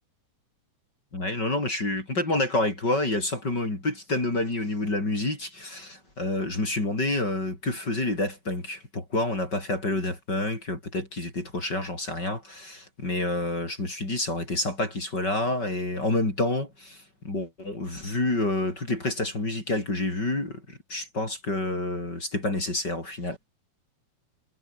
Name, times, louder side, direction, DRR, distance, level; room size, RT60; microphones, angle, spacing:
voice 1, 1.1-23.4, left 2 dB, 30° left, 6.6 m, -28 dB
omnidirectional pair, 3.7 m